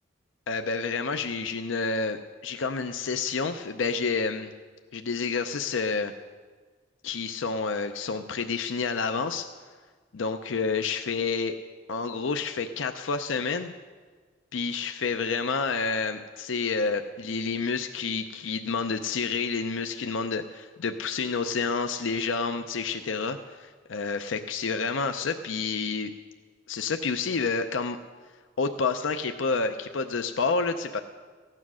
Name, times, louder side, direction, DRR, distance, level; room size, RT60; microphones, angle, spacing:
voice 1, 0.5-4.5 4.9-6.1 7.0-9.5 10.1-11.5 11.9-13.7 14.5-26.1 26.7-28.0 28.6-31.0, left 4 dB, 85° left, 7 dB, 0.6 m, -29 dB
15.0 x 9.6 x 6.2 m, 1.5 s
head